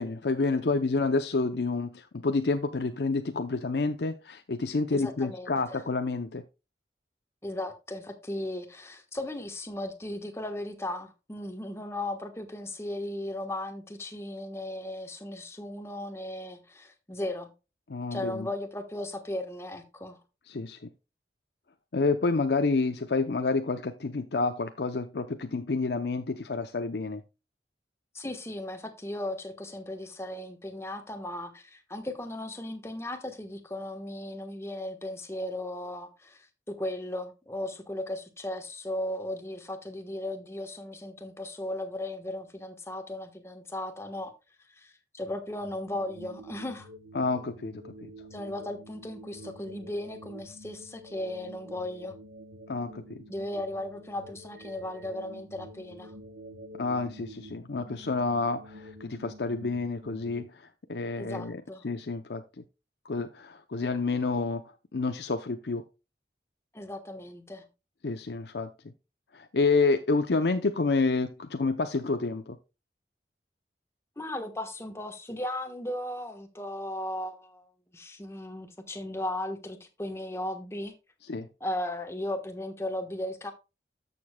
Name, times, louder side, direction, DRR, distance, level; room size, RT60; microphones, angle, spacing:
voice 1, 0.0-6.4 17.9-18.5 20.5-20.8 21.9-27.2 47.1-47.9 52.7-53.2 56.8-62.6 63.0-64.6 64.9-65.8 68.0-68.7 69.3-72.6 81.3-81.5, left 3 dB, 70° left, 0.7 m, -29 dB
voice 2, 4.9-5.8 7.4-17.5 18.1-20.2 28.1-44.3 44.7-46.9 48.3-52.2 53.3-56.2 61.2-61.8 66.7-67.7 74.2-80.9 81.6-83.5, left 1 dB, 15° left, 1.2 m, -36 dB
sound 1, 45.6-60.4, equal, 55° right, 1.2 m, -48 dB
13.0 x 6.9 x 2.2 m
head